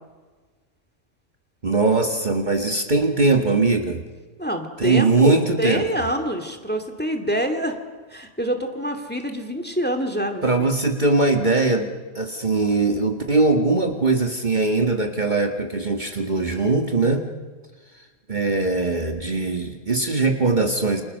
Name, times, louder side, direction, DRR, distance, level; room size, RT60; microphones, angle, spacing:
voice 1, 1.6-4.0 4.8-5.9 10.4-11.9 12.2-17.3 18.3-21.0, right 3 dB, 35° right, 4 dB, 1.9 m, -21 dB
voice 2, 4.4-7.8 8.1-10.7, right 1 dB, 5° left, 6 dB, 2.3 m, -26 dB
29.5 x 26.5 x 6.6 m, 1.4 s
omnidirectional pair, 1.3 m